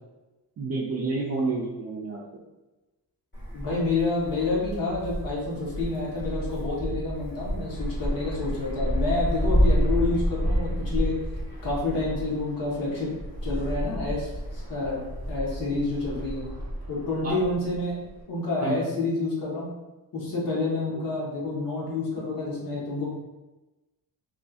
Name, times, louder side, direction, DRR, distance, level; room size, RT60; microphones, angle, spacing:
voice 1, 0.6-2.2 17.2-17.4 18.6-18.8 20.9-21.0, right 3 dB, 40° right, -3 dB, 0.5 m, -29 dB
Wind, 3.3-18.2, equal, 30° left, 1.5 m, -30 dB
voice 2, 3.5-11.2 11.6-13.1 13.4-15.0 15.3-16.4 16.9-18.0 18.3-19.7 20.1-23.1, left 3 dB, 55° left, -5 dB, 1.2 m, -28 dB
3.0 x 2.6 x 2.4 m, 1.1 s
wide cardioid pair, 140°, 39 cm